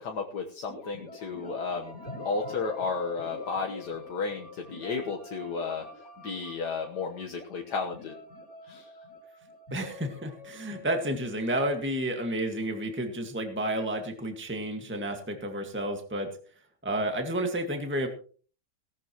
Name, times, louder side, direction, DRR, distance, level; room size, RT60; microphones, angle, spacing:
voice 1, 0.0-2.0 2.3-5.9 6.2-8.1 8.7-8.9, left 4 dB, 70° left, 1 dB, 1.9 m, -33 dB
sound 1, 0.7-12.4, left 3 dB, 50° left, 3.5 m, -45 dB
voice 2, 9.7-16.4 16.8-18.1, right 1 dB, 5° right, 3 dB, 1.7 m, -31 dB
18.0 x 13.0 x 3.1 m, 0.41 s
omnidirectional pair, 1.9 m